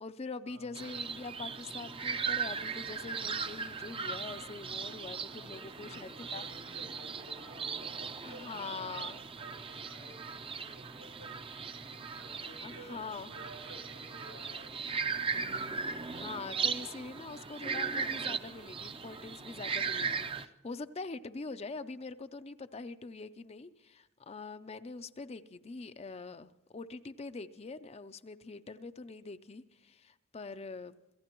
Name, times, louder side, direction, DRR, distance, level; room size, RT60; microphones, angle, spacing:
voice 1, 0.0-6.5 8.2-9.2 12.6-13.3 15.9-31.0, left 3 dB, 30° left, 0.5 m, -44 dB
sound 1, 0.8-20.5, right 5 dB, 25° right, 0.5 m, -38 dB
voice 2, 5.3-15.0, right 1 dB, 80° right, 6.6 m, -53 dB
27.0 x 15.5 x 3.0 m
head